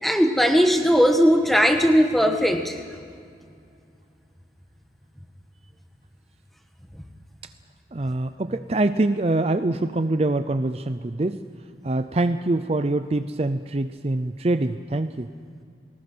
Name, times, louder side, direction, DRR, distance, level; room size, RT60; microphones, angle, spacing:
voice 1, 0.0-2.8, equal, ahead, 4 dB, 1.5 m, -18 dB
voice 2, 7.9-11.4 11.8-15.3, right 2 dB, 35° right, 10 dB, 0.5 m, -24 dB
29.0 x 20.0 x 6.2 m, 2.3 s
head